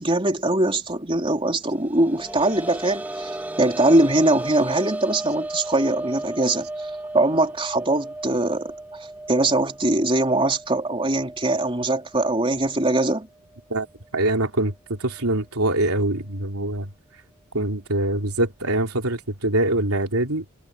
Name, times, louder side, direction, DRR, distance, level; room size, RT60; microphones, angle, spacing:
voice 1, 0.0-3.3 3.6-6.7 7.1-8.7 9.3-13.3, right 2 dB, 25° right, 3.9 m, -22 dB
sound 1, 1.7-13.2 13.5-13.6 15.2-15.3, right 2 dB, 10° right, 2.5 m, -35 dB
voice 2, 14.1-16.9 17.5-20.4, right 1 dB, 75° right, 3.5 m, -24 dB
head